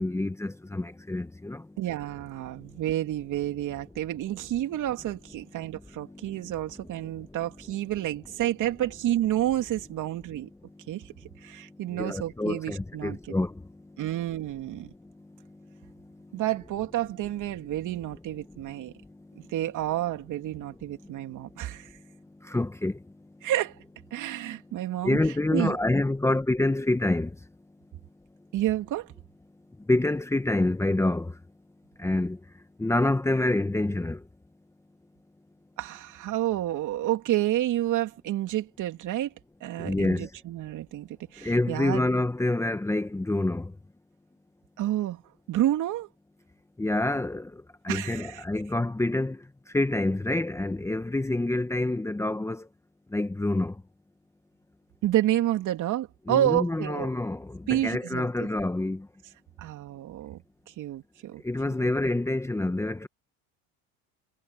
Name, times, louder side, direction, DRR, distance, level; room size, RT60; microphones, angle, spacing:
voice 1, 0.0-1.7 6.0-6.4 6.8-7.1 11.9-13.6 15.8-15.9 18.5-18.6 22.4-23.0 25.0-27.4 29.9-31.4 32.0-32.4 32.8-34.2 39.8-40.3 41.4-43.7 46.8-52.7 53.1-53.8 56.3-59.1 61.4-63.1, left 2 dB, 5° left, 1.3 m, -27 dB
voice 2, 1.8-10.5 10.9-11.1 11.4-13.2 14.0-14.9 16.3-18.9 19.4-21.9 23.4-23.8 24.1-25.2 25.5-25.8 28.5-29.1 35.8-39.3 39.6-42.0 44.8-45.2 45.5-46.1 47.9-48.4 55.0-57.1 57.7-58.5 59.6-61.4, right 13 dB, 50° right, 3.2 m, -29 dB
supercardioid pair, 110°, 39 cm